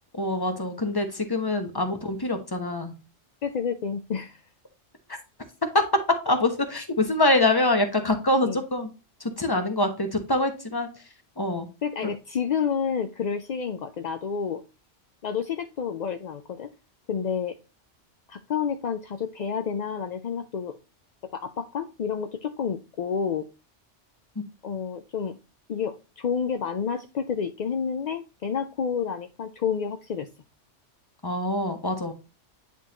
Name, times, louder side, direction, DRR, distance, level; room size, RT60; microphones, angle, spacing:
voice 1, 0.1-2.9 5.7-5.8 6.2-8.9 9.2-10.9 11.4-11.7 31.2-32.1, left 2 dB, 20° left, 1.1 m, -25 dB
voice 2, 3.4-4.4 8.4-8.6 11.8-14.6 15.2-16.7 17.1-17.6 18.3-20.8 21.3-23.5 24.6-25.4 25.7-30.3, left 6 dB, 55° left, 0.5 m, -29 dB
9.8 x 3.7 x 2.8 m
omnidirectional pair, 1.2 m